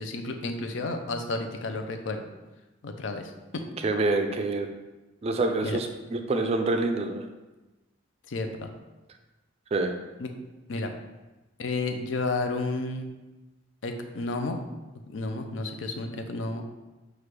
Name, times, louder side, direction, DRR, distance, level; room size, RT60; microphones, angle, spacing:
voice 1, 0.0-2.2 2.8-3.6 5.6-5.8 8.3-8.7 10.2-10.3 10.7-10.9 11.6-13.1 13.8-14.6 15.1-16.6, left 3 dB, 75° left, 6 dB, 0.5 m, -31 dB
voice 2, 3.8-4.7 5.2-5.9 6.1-7.2 9.7-9.9, right 2 dB, 30° right, 5 dB, 0.3 m, -26 dB
5.9 x 2.4 x 3.3 m, 1.1 s
head